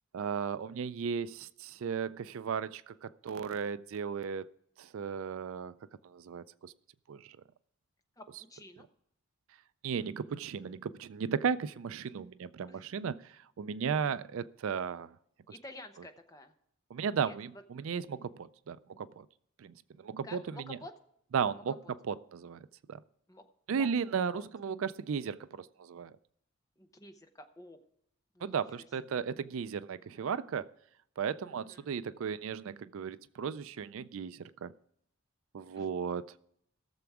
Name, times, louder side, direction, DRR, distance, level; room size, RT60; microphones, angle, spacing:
voice 1, 0.1-4.5 4.8-5.7 6.0-6.7 7.1-7.4 9.8-15.1 16.9-19.3 19.6-20.8 21.3-21.7 22.1-22.6 22.9-23.0 23.7-26.1 28.4-30.7 31.2-34.7 35.5-36.3, right 6 dB, 60° right, 0.4 m, -35 dB
voice 2, 8.2-8.9 12.7-12.9 13.8-14.2 15.5-16.5 17.2-17.4 20.2-20.9 23.3-23.4 23.7-23.9 24.3-24.5 26.8-27.8 28.3-28.9 29.1-29.2 30.0-30.2 31.5-31.9 35.8-35.9, left 1 dB, 15° left, 0.8 m, -51 dB
17.5 x 7.0 x 4.7 m
head